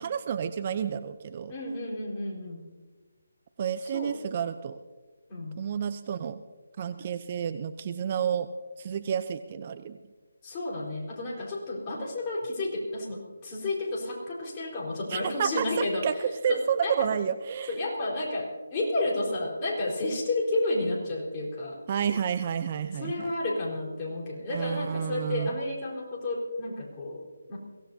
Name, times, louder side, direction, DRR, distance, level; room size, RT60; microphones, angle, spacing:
voice 1, 0.0-1.5 3.6-4.8 5.6-6.4 6.8-8.5 8.8-10.0 15.1-17.7 21.9-23.3 24.5-25.5, right 8 dB, 35° right, 12 dB, 0.6 m, -30 dB
voice 2, 1.5-2.6 3.8-4.1 5.3-5.6 10.4-16.0 16.5-17.1 17.7-21.8 22.9-27.6, left 2 dB, 25° left, -4 dB, 4.3 m, -31 dB
23.0 x 17.0 x 2.8 m, 1.4 s
figure-of-eight pair, 160°, 0 cm